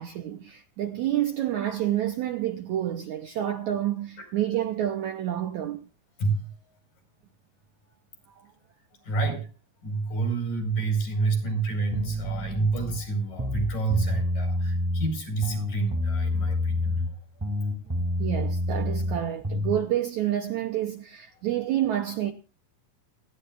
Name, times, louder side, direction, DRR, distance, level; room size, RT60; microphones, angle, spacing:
voice 1, 0.0-5.8 8.4-8.5 18.2-22.3, right 12 dB, 75° right, 1.8 m, -28 dB
voice 2, 9.0-9.5 9.8-17.1, right 4 dB, 60° left, 6.9 m, -28 dB
sound 1, 11.9-13.0 13.3-15.1 15.4-17.1 17.4-19.8, left 1 dB, 5° right, 2.0 m, -28 dB
28.5 x 11.0 x 2.5 m
omnidirectional pair, 4.4 m